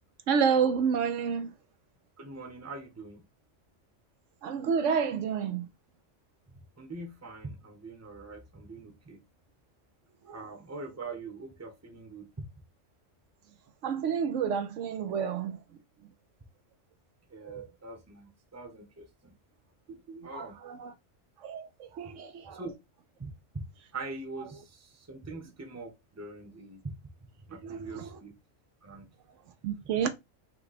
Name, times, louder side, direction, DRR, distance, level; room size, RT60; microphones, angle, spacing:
voice 1, 0.3-1.5 4.4-5.7 10.3-10.4 13.8-15.6 17.4-17.7 20.1-20.9 21.4-22.6 27.6-28.1 29.6-30.1, right 6 dB, 75° right, 0.9 m, -29 dB
voice 2, 2.2-3.2 6.5-9.2 10.3-12.5 17.3-19.3 20.2-20.6 22.5-22.7 23.2-23.7 23.9-26.9 27.5-28.3 28.8-29.1 29.8-30.1, right 3 dB, 15° right, 0.7 m, -43 dB
5.7 x 2.2 x 4.0 m
omnidirectional pair, 1.3 m